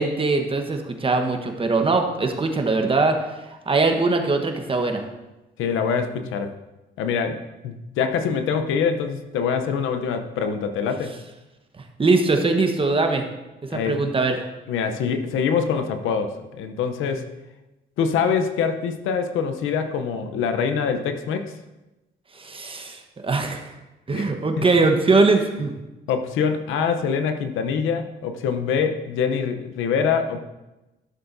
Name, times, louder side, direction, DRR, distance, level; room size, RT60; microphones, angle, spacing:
voice 1, 0.0-3.2 3.7-5.0 12.0-13.2 13.6-14.4 22.4-23.7 24.1-25.7, right 3 dB, 25° right, 4 dB, 1.1 m, -21 dB
voice 2, 5.6-6.5 7.0-11.2 13.7-14.0 14.7-17.3 18.0-21.5 24.1-24.3 24.6-24.7 26.1-30.4, left 6 dB, 90° left, 7 dB, 0.8 m, -24 dB
13.0 x 6.9 x 2.7 m, 1.0 s
cardioid pair, 90°, 20 cm